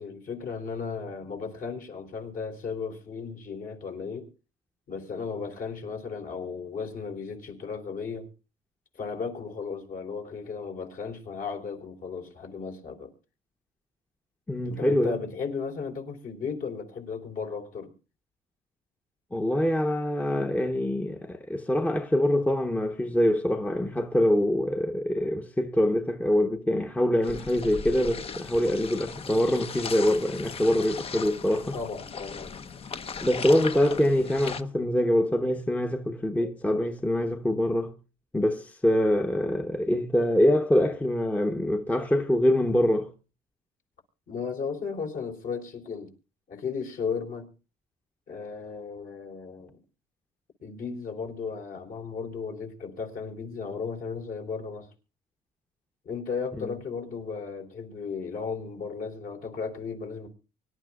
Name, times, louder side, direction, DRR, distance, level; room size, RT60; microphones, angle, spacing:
voice 1, 0.0-4.3 4.9-8.3 9.0-13.1 14.6-17.9 31.7-32.6 44.3-46.1 46.5-47.5 48.3-49.7 50.6-54.9 56.0-60.3, left 5 dB, 55° left, 4.2 m, -35 dB
voice 2, 14.5-15.2 19.3-31.8 33.2-37.9 38.3-43.1 56.6-56.7, left 1 dB, 10° left, 1.0 m, -24 dB
sound 1, 27.2-34.6, left 5 dB, 35° left, 0.9 m, -38 dB
24.5 x 11.5 x 2.4 m
cardioid pair, 110°, 17 cm